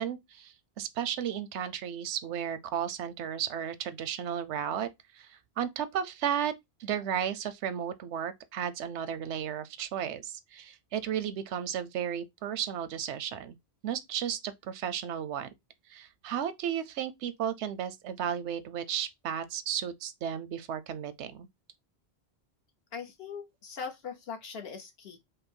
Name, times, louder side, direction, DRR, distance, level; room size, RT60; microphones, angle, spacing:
voice 1, 0.0-4.9 5.1-6.5 6.8-13.6 13.8-15.5 15.9-21.5, right 9 dB, 90° right, 0.9 m, -34 dB
voice 2, 22.9-25.2, left 6 dB, 65° left, 1.1 m, -40 dB
4.9 x 2.1 x 4.3 m
omnidirectional pair, 1.1 m